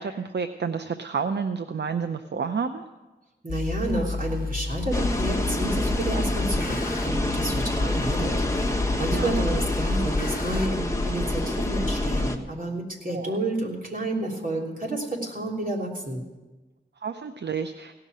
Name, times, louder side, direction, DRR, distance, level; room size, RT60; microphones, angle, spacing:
voice 1, 0.0-2.8 9.1-9.4 13.1-13.4 17.0-17.9, right 5 dB, 70° right, 8 dB, 0.6 m, -30 dB
voice 2, 3.4-16.2, right 1 dB, 50° right, -2 dB, 3.2 m, -30 dB
sound 1, 3.5-10.7, left 3 dB, 50° left, 1.1 m, -31 dB
sound 2, 4.9-12.4, left 1 dB, 15° left, 1.3 m, -27 dB
17.0 x 5.9 x 9.2 m, 1.2 s
wide cardioid pair, 50°, 19 cm